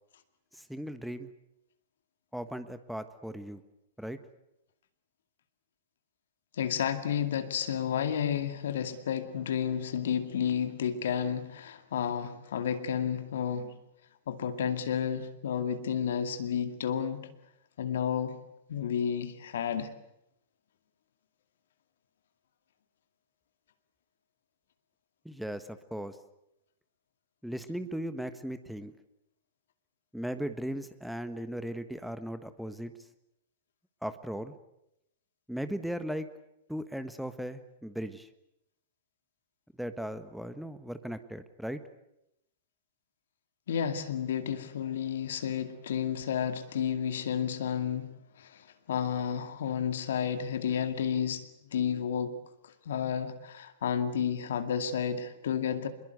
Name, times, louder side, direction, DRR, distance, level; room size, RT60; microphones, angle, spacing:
voice 1, 0.5-1.3 2.3-3.6 4.0-4.2 25.2-26.2 27.4-28.9 30.1-32.9 34.0-34.5 35.5-36.3 36.7-38.3 39.8-41.8, equal, ahead, 11 dB, 1.4 m, -37 dB
voice 2, 6.6-13.7 14.3-17.3 17.8-18.4 18.7-19.9 43.7-51.5 51.7-52.4 52.9-55.9, left 8 dB, 65° left, 9 dB, 2.3 m, -31 dB
26.0 x 21.5 x 8.1 m, 0.83 s
figure-of-eight pair, 100°, 0 cm